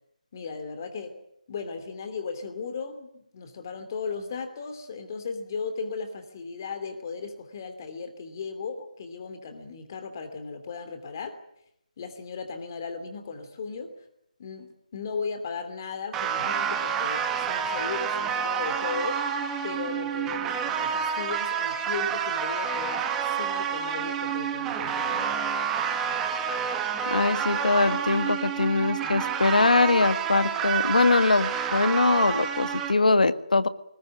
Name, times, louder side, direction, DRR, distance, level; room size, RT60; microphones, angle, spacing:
voice 1, 0.3-1.2 1.5-11.4 12.0-13.9 14.4-19.2 19.6-23.1 23.3-25.6, left 5 dB, 25° left, 8 dB, 2.9 m, -36 dB
sound 1, 16.1-32.9, right 7 dB, 5° right, 1.2 m, -29 dB
voice 2, 27.1-33.7, left 3 dB, 85° left, 12 dB, 1.7 m, -22 dB
20.5 x 20.0 x 9.9 m, 0.78 s
hypercardioid pair, 170°, 4 cm